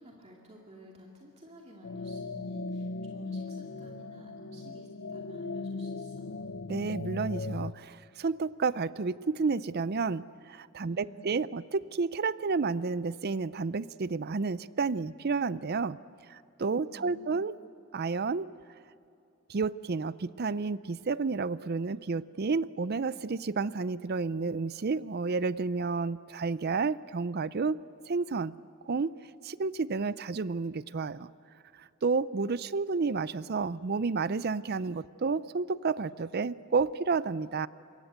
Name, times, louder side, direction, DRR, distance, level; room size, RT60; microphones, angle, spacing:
voice 1, 0.0-6.3 10.8-11.3 16.7-17.4, right 1 dB, 30° right, -1 dB, 2.5 m, -52 dB
sound 1, 1.8-7.7, left 3 dB, 55° left, 0.7 m, -38 dB
voice 2, 6.7-16.0 16.3-17.6 17.9-18.5 19.5-27.8 28.1-28.5 28.8-29.2 29.4-31.3 32.0-37.7, right 4 dB, 50° right, 17 dB, 0.5 m, -31 dB
26.5 x 22.5 x 8.0 m, 2.6 s
head